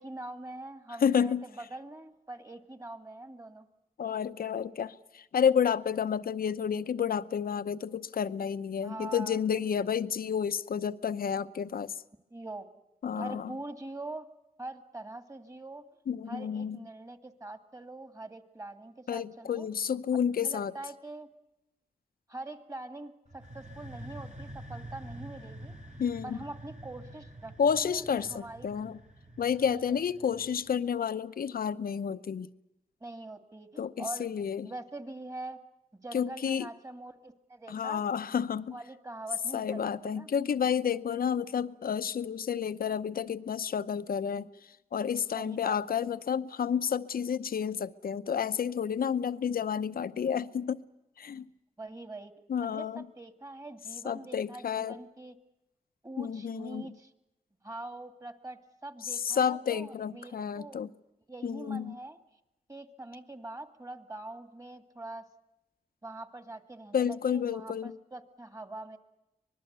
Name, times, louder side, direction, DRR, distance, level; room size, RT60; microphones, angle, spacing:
voice 1, 0.0-3.7 8.8-10.0 12.3-12.7 13.1-14.3 14.6-15.9 16.3-19.7 20.4-21.3 22.3-25.7 26.2-28.8 29.7-30.0 33.0-34.3 34.6-35.6 35.9-38.0 38.7-40.3 45.3-46.0 51.8-52.3 52.6-55.4 56.0-57.1 57.6-60.8 61.3-62.2 62.7-65.3 66.0-69.0, right 2 dB, 25° right, 2.3 m, -44 dB
voice 2, 1.0-1.4 4.0-11.9 13.0-13.5 16.1-16.8 19.1-20.7 26.0-26.4 27.6-29.0 29.4-32.5 33.8-34.7 36.1-36.7 37.7-38.7 39.5-44.5 44.9-50.8 51.2-51.5 52.5-53.0 54.0-55.0 56.2-56.9 59.0-60.9 61.4-62.0 66.9-67.9, left 7 dB, 90° left, 0.8 m, -30 dB
sound 1, 23.3-30.9, right 1 dB, 55° right, 3.9 m, -47 dB
25.0 x 20.5 x 8.1 m
wide cardioid pair, 80°, 15 cm